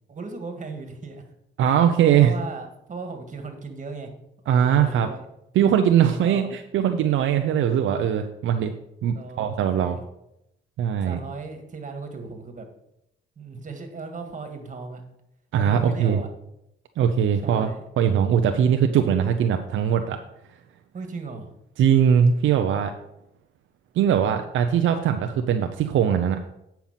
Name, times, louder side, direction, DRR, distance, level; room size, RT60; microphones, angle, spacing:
voice 1, 0.1-1.2 1.6-4.1 4.4-5.2 6.1-6.5 9.1-10.0 11.0-12.7 13.4-15.0 15.6-16.3 17.4-17.9 20.9-21.5, right 4 dB, 40° right, 5 dB, 2.0 m, -37 dB
voice 2, 1.6-2.3 4.5-5.1 5.5-8.7 9.0-10.0 10.8-11.2 15.5-16.2 17.0-17.7 18.0-20.2 21.8-22.9 23.9-26.5, right 8 dB, 75° right, 6 dB, 0.7 m, -21 dB
8.9 x 5.8 x 5.7 m, 0.81 s
cardioid pair, 90°, 20 cm